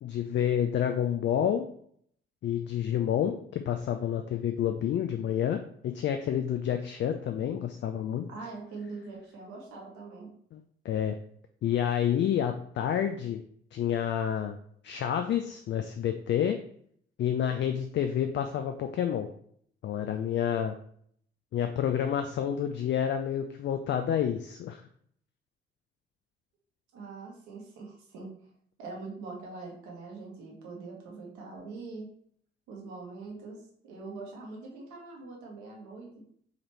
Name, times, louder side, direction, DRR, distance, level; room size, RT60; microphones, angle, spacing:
voice 1, 0.0-1.6 2.4-8.3 10.5-11.1 11.6-13.4 13.7-14.6 14.8-16.6 17.2-19.3 19.8-20.8 21.5-24.8, left 9 dB, 40° left, 7 dB, 0.4 m, -29 dB
voice 2, 8.3-10.3 26.9-28.3 28.8-32.1 32.7-36.2, right 3 dB, 65° right, -1 dB, 1.2 m, -43 dB
4.8 x 3.1 x 3.1 m, 0.64 s
figure-of-eight pair, 40°, 30 cm